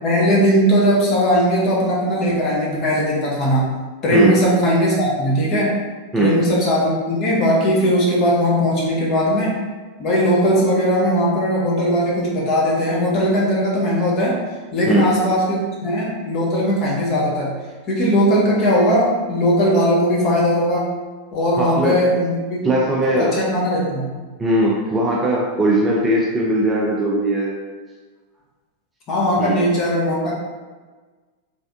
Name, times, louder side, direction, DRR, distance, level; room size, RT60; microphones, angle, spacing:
voice 1, 0.0-3.7 4.0-5.7 6.2-9.5 10.0-14.4 14.7-17.5 17.9-20.9 21.3-22.7 23.0-24.1 29.1-30.3, equal, 35° left, -5 dB, 1.2 m, -18 dB
voice 2, 4.1-4.4 6.1-6.4 14.9-15.2 21.6-22.0 22.6-23.4 24.4-27.5 29.4-29.7, right 1 dB, 15° right, -3 dB, 0.5 m, -19 dB
3.3 x 3.3 x 2.7 m, 1.4 s
figure-of-eight pair, 90°, 0 cm